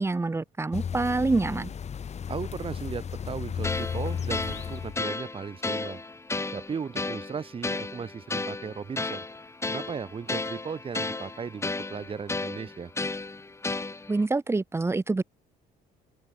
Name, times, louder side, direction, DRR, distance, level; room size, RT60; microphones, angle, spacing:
voice 1, 0.0-1.7 14.1-15.2, right 3 dB, 15° right, 1.9 m, -26 dB
sound 1, 0.7-5.0, left 7 dB, 40° left, 3.8 m, -34 dB
voice 2, 2.3-6.0 6.5-9.2 9.7-12.9, right 6 dB, 35° right, 2.1 m, -36 dB
sound 2, 3.6-14.3, left 3 dB, 15° left, 3.6 m, -34 dB
open air
cardioid pair, 110°, 17 cm